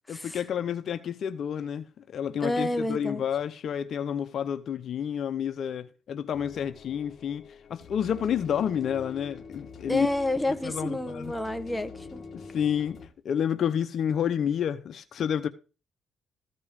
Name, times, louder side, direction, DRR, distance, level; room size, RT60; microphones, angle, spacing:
voice 1, 0.1-10.1 10.6-11.3 12.3-15.5, left 8 dB, 60° left, 0.8 m, -30 dB
voice 2, 2.4-3.2 9.9-12.2, left 1 dB, 10° left, 1.5 m, -29 dB
sound 1, 6.3-13.1, left 4 dB, 45° left, 2.2 m, -45 dB
14.5 x 5.5 x 6.3 m
cardioid pair, 90°, 0 cm